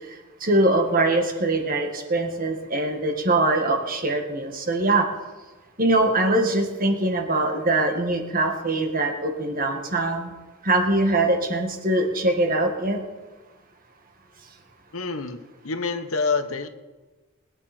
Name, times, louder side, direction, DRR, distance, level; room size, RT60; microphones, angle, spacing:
voice 1, 0.4-5.1 5.8-10.3 10.6-13.0, right 2 dB, 40° right, 4 dB, 1.9 m, -22 dB
voice 2, 14.9-15.4 15.6-16.7, left 4 dB, 70° left, 9 dB, 1.1 m, -26 dB
21.5 x 9.7 x 4.4 m, 1.2 s
head